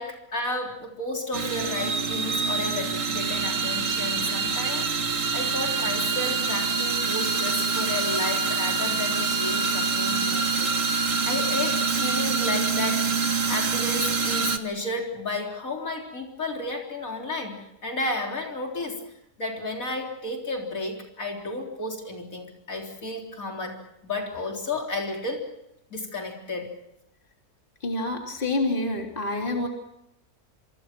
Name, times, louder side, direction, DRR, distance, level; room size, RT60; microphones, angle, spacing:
voice 1, 0.0-19.1 19.4-25.5 25.9-26.7, left 2 dB, 65° left, 1 dB, 4.2 m, -33 dB
sound 1, 1.3-14.6, right 4 dB, 55° right, 2.0 m, -26 dB
voice 2, 27.8-29.7, left 2 dB, 35° left, 2 dB, 3.5 m, -27 dB
26.5 x 25.5 x 6.0 m, 0.82 s
omnidirectional pair, 1.6 m